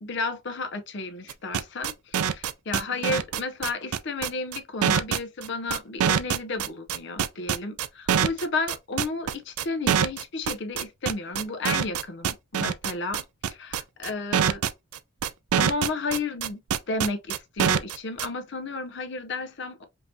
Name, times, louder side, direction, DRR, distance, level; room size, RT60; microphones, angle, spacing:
voice 1, 0.0-13.2 13.5-14.6 15.6-16.6 16.9-19.8, left 3 dB, 50° left, 0.6 m, -32 dB
sound 1, 1.3-18.3, right 8 dB, 85° right, 0.4 m, -24 dB
5.3 x 2.7 x 2.7 m
head